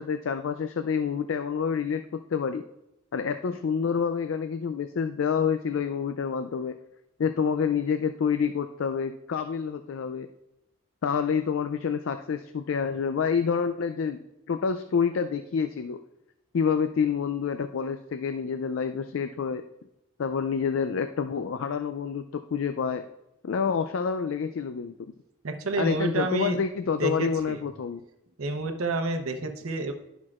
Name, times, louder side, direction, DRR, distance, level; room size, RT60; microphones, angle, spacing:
voice 1, 0.0-2.6 3.1-6.8 7.2-10.3 11.0-14.2 14.5-16.0 16.5-19.6 20.2-23.0 23.4-25.1 25.8-28.0, left 6 dB, 70° left, 9 dB, 0.4 m, -28 dB
voice 2, 25.4-26.6 27.0-27.6 28.4-29.9, right 2 dB, 90° right, 6 dB, 0.8 m, -29 dB
10.5 x 6.0 x 2.4 m, 0.88 s
head